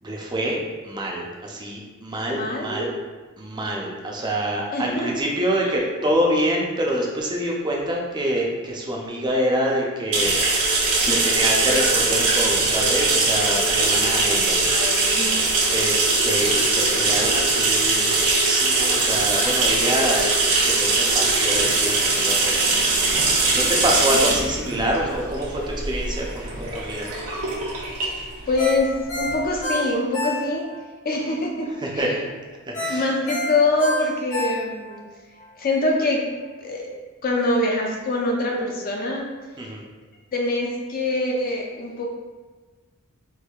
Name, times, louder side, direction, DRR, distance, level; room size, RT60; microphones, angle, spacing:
voice 1, 0.0-0.6 0.8-2.9 3.4-10.3 11.1-14.6 15.7-20.2 20.6-27.1 31.8-32.1 32.7-33.1 39.6-39.8, equal, 20° right, -1 dB, 0.5 m, -26 dB
voice 2, 2.3-2.9 4.7-5.1 5.6-5.8 11.1-11.2 14.6-15.3 28.5-30.6 31.0-31.7 31.9-32.2 32.9-35.0 35.6-36.2 36.6-36.9 37.2-39.3 40.3-42.1, left 2 dB, 40° left, -1 dB, 0.6 m, -24 dB
sound 1, 10.1-29.5, right 3 dB, 80° right, 0.8 m, -21 dB
Ringtone, 28.6-30.8 31.2-31.3 32.7-35.0 35.4-35.5, left 1 dB, 65° left, 1.3 m, -28 dB
4.5 x 2.6 x 2.3 m, 1.3 s
head